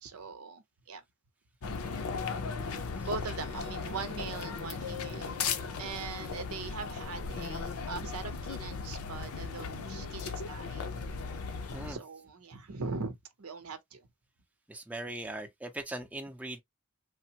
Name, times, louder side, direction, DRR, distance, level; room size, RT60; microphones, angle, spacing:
voice 1, 0.0-1.0 3.1-5.4 5.8-11.1 11.9-14.1, right 4 dB, 90° right, 0.7 m, -41 dB
sound 1, 1.6-12.0, left 5 dB, 85° left, 0.6 m, -37 dB
voice 2, 14.7-16.6, right 1 dB, 5° right, 0.5 m, -40 dB
3.3 x 2.1 x 2.8 m
head